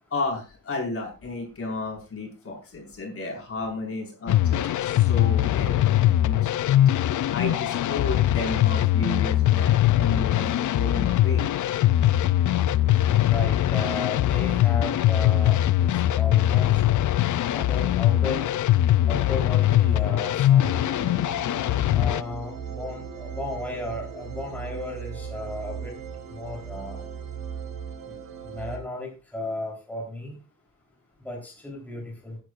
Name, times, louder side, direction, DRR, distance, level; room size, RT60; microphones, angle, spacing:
voice 1, 0.1-6.8 7.3-11.5, left 3 dB, 45° left, 0 dB, 5.4 m, -33 dB
sound 1, 4.3-22.2, left 13 dB, 65° left, 0.6 m, -21 dB
voice 2, 13.2-16.7 17.5-18.6 19.1-20.8 21.9-25.9 26.3-27.0 28.1-28.2 28.4-30.4 31.2-32.4, left 2 dB, 5° left, -2 dB, 3.9 m, -34 dB
sound 2, 20.6-28.8, right 6 dB, 90° right, 4.3 m, -38 dB
16.5 x 11.0 x 2.5 m, 0.31 s
wide cardioid pair, 135°, 32 cm